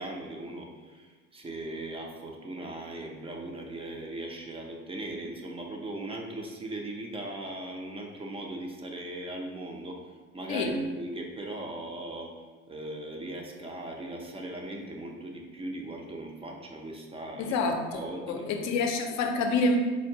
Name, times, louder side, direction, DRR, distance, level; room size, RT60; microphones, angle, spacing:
voice 1, 0.0-10.0 10.3-17.6 17.9-19.1, right 1 dB, 15° right, 1 dB, 0.5 m, -38 dB
voice 2, 17.4-18.0 18.3-19.8, left 3 dB, 50° left, 5 dB, 0.6 m, -27 dB
4.4 x 2.5 x 2.8 m, 1.4 s
hypercardioid pair, 85°, 36 cm